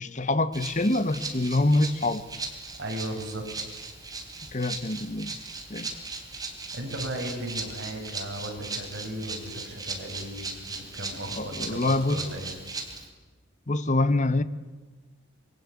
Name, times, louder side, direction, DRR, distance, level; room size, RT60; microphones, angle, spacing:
voice 1, 0.0-2.2 4.5-5.3 5.7-5.9 11.4-12.2 13.7-14.4, left 2 dB, 35° left, 1.2 m, -25 dB
Rattle (instrument), 0.5-13.1, right 3 dB, 20° right, 3.4 m, -38 dB
voice 2, 2.8-3.4 6.7-12.6, right 1 dB, 55° right, 7.0 m, -36 dB
26.0 x 23.0 x 8.6 m
head